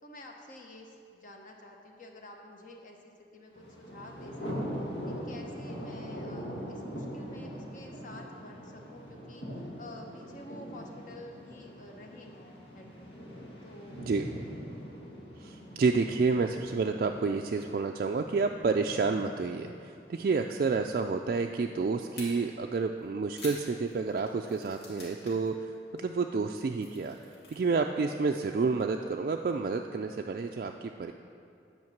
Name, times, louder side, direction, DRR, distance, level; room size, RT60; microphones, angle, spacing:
voice 1, 0.0-4.7 5.1-13.1 13.6-14.4, left 1 dB, 45° left, 1 dB, 0.8 m, -50 dB
Thunder, 3.5-20.5, equal, 90° left, 1.7 m, -42 dB
voice 2, 15.4-27.2 27.5-31.1, right 4 dB, 50° right, 3 dB, 0.3 m, -29 dB
sound 1, 22.1-22.3 23.0-25.5 25.7-26.0 26.4-27.6, left 2 dB, 65° left, 2.6 m, -48 dB
9.4 x 5.1 x 7.2 m, 2.5 s
head